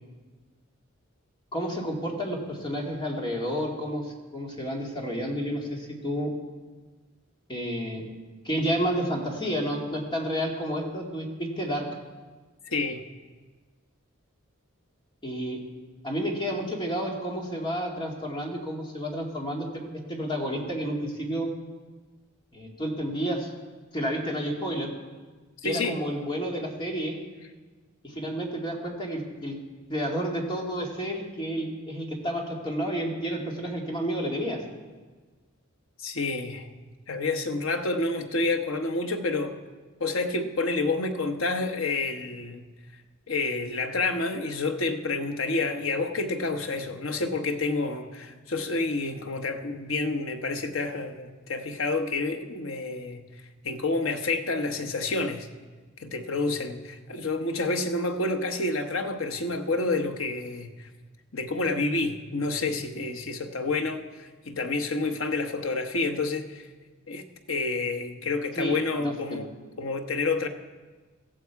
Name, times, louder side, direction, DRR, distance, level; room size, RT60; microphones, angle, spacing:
voice 1, 1.5-6.3 7.5-8.0 8.4-11.9 15.2-15.6 16.0-19.8 20.1-21.5 22.5-23.5 23.9-24.9 25.6-27.2 28.0-29.6 29.9-34.6 68.5-69.4, equal, 25° left, -1 dB, 2.3 m, -30 dB
voice 2, 12.7-13.0 25.6-26.0 36.0-36.7 37.1-39.5 40.0-42.6 43.3-53.2 53.6-55.5 56.0-60.7 61.3-66.6 67.1-69.5 69.8-70.5, left 3 dB, 80° left, 6 dB, 1.1 m, -29 dB
17.0 x 14.5 x 4.7 m, 1.4 s
head